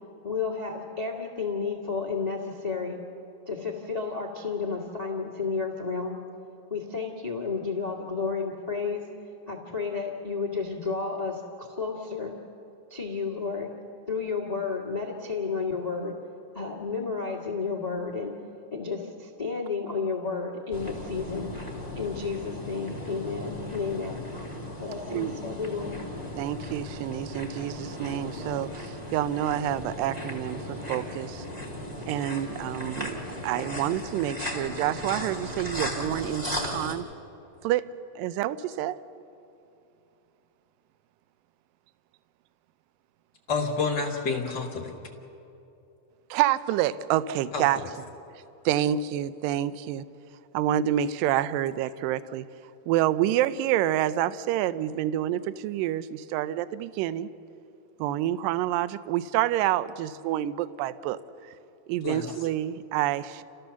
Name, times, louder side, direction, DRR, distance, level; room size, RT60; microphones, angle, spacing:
voice 1, 0.2-3.0 3.5-6.2 6.7-9.0 9.5-12.3 12.9-13.7 14.1-16.1 16.5-18.3 18.7-21.5 21.9-24.2 24.8-26.0, left 5 dB, 85° left, 0 dB, 0.3 m, -31 dB
sound 1, 20.7-36.9, left 1 dB, 15° right, 1.8 m, -36 dB
voice 2, 26.4-31.5 32.1-37.1 37.6-37.8 38.2-39.0 46.3-47.8 48.7-50.0 50.5-52.5 52.9-57.3 58.0-61.2 61.9-63.4, right 12 dB, 80° right, 14 dB, 2.1 m, -28 dB
voice 3, 43.5-44.9 47.5-47.9 62.0-62.5, left 4 dB, 50° left, 1 dB, 1.3 m, -29 dB
29.5 x 14.5 x 7.0 m, 2.9 s
omnidirectional pair, 4.3 m